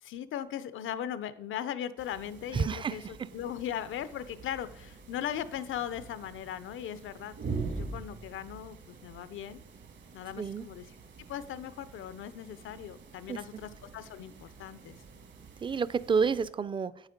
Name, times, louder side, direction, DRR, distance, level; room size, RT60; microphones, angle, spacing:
voice 1, 0.0-7.3 7.6-9.6 10.1-10.9 11.3-15.0, left 10 dB, 85° left, 14 dB, 0.6 m, -38 dB
sound 1, 2.0-16.5, right 4 dB, 65° right, 1.6 m, -45 dB
voice 2, 2.5-3.0 10.4-10.6 13.3-13.4 15.6-17.1, right 5 dB, 25° right, 17 dB, 0.4 m, -29 dB
8.4 x 8.1 x 5.1 m, 0.85 s
cardioid pair, 125°, 20 cm